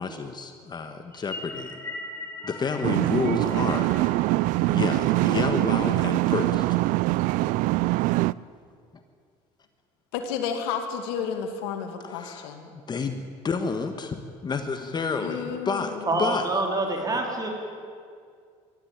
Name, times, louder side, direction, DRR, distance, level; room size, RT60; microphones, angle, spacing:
voice 1, 0.0-1.8 2.4-3.9 4.7-6.8 12.1-12.5 12.7-16.4, left 5 dB, 35° left, 7 dB, 1.4 m, -30 dB
sound 1, 1.1-5.7, left 2 dB, 15° left, 2.4 m, -41 dB
sound 2, 2.8-8.3, right 20 dB, 75° right, 0.4 m, -23 dB
voice 2, 10.1-12.7 15.2-16.3, left 7 dB, 90° left, 5 dB, 2.3 m, -32 dB
voice 3, 16.0-17.5, right 2 dB, 30° right, 2 dB, 4.3 m, -26 dB
22.0 x 13.5 x 8.9 m, 2.2 s
supercardioid pair, 95°, 13 cm